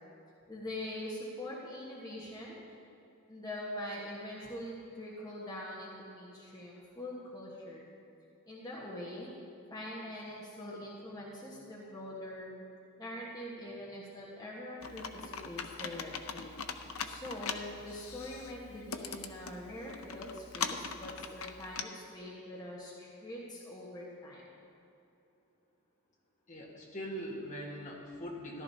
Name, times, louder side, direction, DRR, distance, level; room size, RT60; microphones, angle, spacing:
voice 1, 0.5-2.6 3.3-7.9 8.5-9.3 9.7-12.5 13.0-16.5 17.0-24.5, left 1 dB, 20° left, -6 dB, 1.3 m, -43 dB
Computer keyboard, 14.8-21.8, left 6 dB, 80° left, 0.6 m, -41 dB
voice 2, 26.5-28.6, equal, 35° left, -3 dB, 1.5 m, -41 dB
14.5 x 11.5 x 2.8 m, 2.7 s
head